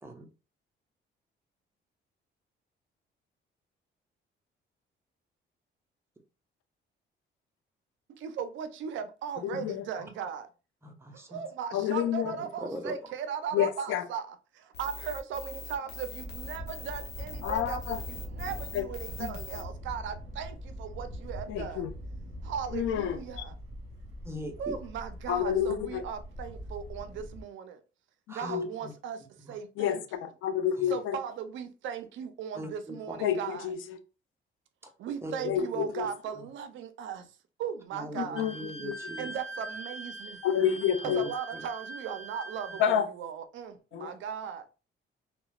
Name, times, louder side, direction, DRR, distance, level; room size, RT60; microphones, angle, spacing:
voice 1, 8.1-10.5 11.1-21.9 22.4-23.5 24.6-27.8 28.3-30.0 30.9-33.7 35.0-37.3 37.6-38.5 39.2-40.4 41.0-44.7, right 7 dB, 75° right, 0.4 m, -38 dB
voice 2, 9.4-9.8 11.7-12.4 13.5-14.0 17.4-18.0 18.7-18.8 19.2-19.3 21.5-21.9 22.7-23.4 25.3-26.0 28.5-28.7 29.8-31.2 33.2-33.8 35.4-36.1 38.2-38.5 38.8-39.0 40.4-41.2 42.8-43.1 43.9-44.1, left 9 dB, 90° left, 0.4 m, -29 dB
voice 3, 10.8-11.4 12.2-12.9 13.5-13.7 24.2-24.8 28.3-28.9 29.4-29.6 30.8-30.9 32.5-33.2 35.2-35.9 36.4-36.5 37.9-39.3 41.0-41.2 41.5-41.6, equal, 15° right, 0.6 m, -41 dB
sound 1, 14.7-19.6, left 3 dB, 55° left, 0.8 m, -42 dB
Thunder, 16.2-27.4, equal, 35° right, 1.4 m, -42 dB
Wind instrument woodwind instrument, 38.4-43.0, right 2 dB, 30° left, 1.1 m, -42 dB
2.8 x 2.1 x 2.3 m
cardioid pair, 90°, 20 cm